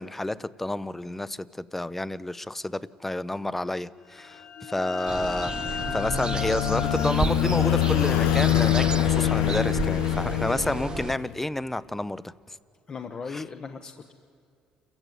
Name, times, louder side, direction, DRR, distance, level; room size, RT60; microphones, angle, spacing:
voice 1, 0.0-12.6 13.3-13.4, left 1 dB, 10° left, 17 dB, 0.7 m, -30 dB
sound 1, 4.1-9.6, left 9 dB, 55° left, 0.8 m, -37 dB
sound 2, 5.1-11.2, right 5 dB, 35° right, 0.5 m, -33 dB
sound 3, 5.6-11.4, left 12 dB, 90° left, 0.9 m, -25 dB
voice 2, 12.9-14.1, left 5 dB, 35° left, 7 dB, 1.0 m, -37 dB
28.5 x 15.0 x 9.3 m, 2.5 s
cardioid pair, 90°, 2 cm